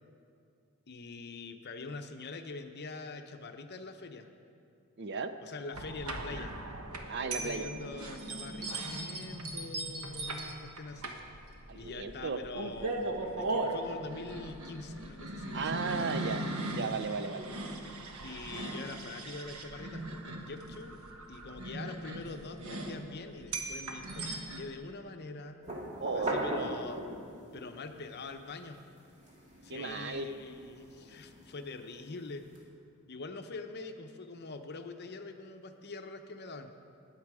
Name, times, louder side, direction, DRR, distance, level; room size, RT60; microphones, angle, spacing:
voice 1, 0.9-4.3 5.4-6.5 7.2-11.1 11.7-13.0 13.4-16.1 18.2-21.0 21.3-25.6 26.1-27.0 27.5-28.8 29.6-32.5 33.1-36.7, left 3 dB, 50° left, 7 dB, 0.7 m, -44 dB
voice 2, 5.0-5.3 7.1-7.7 11.7-12.4 15.5-16.4 16.7-17.5 26.0-26.7 29.7-30.3, right 4 dB, 50° right, 9 dB, 0.6 m, -35 dB
sound 1, 5.7-24.6, right 2 dB, 75° right, 1.2 m, -39 dB
sound 2, 25.6-27.5 27.9-32.6, right 1 dB, 30° right, 2.1 m, -40 dB
19.5 x 7.5 x 4.9 m, 2.5 s
head